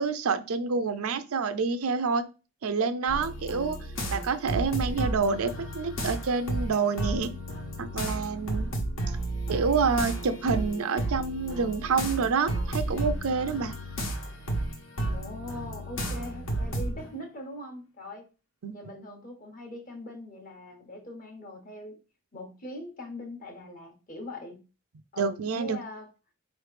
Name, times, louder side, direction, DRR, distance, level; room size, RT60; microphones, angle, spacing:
voice 1, 0.0-2.2 2.6-7.3 7.8-8.7 9.5-13.7 18.6-18.7 25.2-25.8, right 5 dB, 75° right, 0.5 m, -28 dB
sound 1, 3.1-17.1, right 1 dB, 65° left, 1.3 m, -32 dB
voice 2, 15.1-18.3 18.7-22.0 22.3-24.6 25.1-26.1, left 1 dB, 35° left, 1.1 m, -41 dB
4.4 x 3.1 x 3.2 m
head